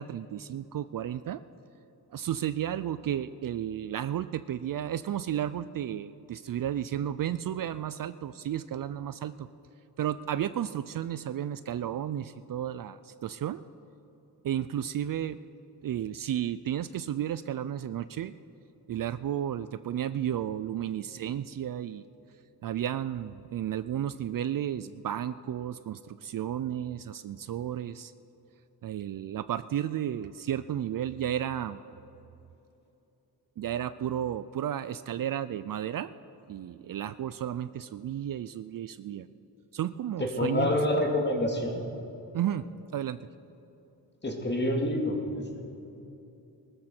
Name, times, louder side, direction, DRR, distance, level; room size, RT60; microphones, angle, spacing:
voice 1, 0.0-1.4 2.1-9.5 10.0-13.6 14.4-15.4 15.8-18.3 18.9-22.0 22.6-28.1 28.8-31.8 33.6-36.1 36.5-39.3 39.7-40.8 42.3-42.7 42.9-43.2, right 10 dB, 55° right, 14 dB, 0.4 m, -33 dB
voice 2, 40.2-41.8 44.2-45.6, left 1 dB, 25° left, 1 dB, 2.3 m, -27 dB
20.0 x 13.5 x 4.5 m, 2.9 s
cardioid pair, 90°, 40 cm